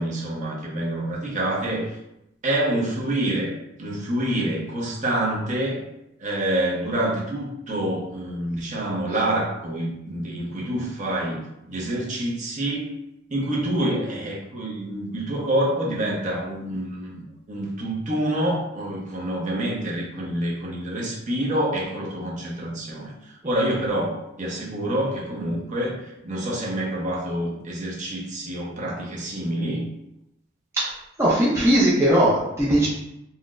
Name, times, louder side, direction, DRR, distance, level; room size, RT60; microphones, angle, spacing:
voice 1, 0.0-1.9 2.4-3.5 3.8-5.8 6.2-12.9 13.3-26.0 26.2-29.9, right 1 dB, 40° right, -4 dB, 0.8 m, -27 dB
voice 2, 31.2-32.9, right 1 dB, 15° right, -7 dB, 0.5 m, -19 dB
4.1 x 2.0 x 2.4 m, 0.84 s
head